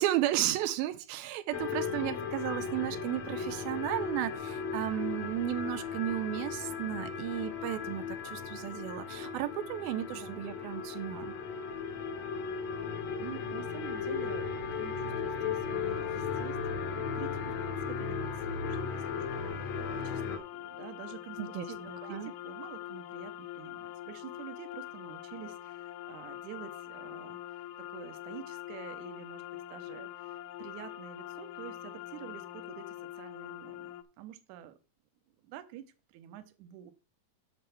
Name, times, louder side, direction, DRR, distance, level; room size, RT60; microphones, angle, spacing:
voice 1, 0.0-11.4 21.4-21.7 22.1-22.3, right 13 dB, 90° right, 2.5 m, -34 dB
sound 1, 1.5-20.4, left 5 dB, 65° left, 1.8 m, -36 dB
voice 2, 13.2-29.4 29.7-34.8 35.4-36.9, right 11 dB, 70° right, 2.0 m, -48 dB
sound 2, 15.7-34.0, left 14 dB, 80° left, 2.0 m, -44 dB
7.9 x 4.4 x 6.9 m
omnidirectional pair, 4.2 m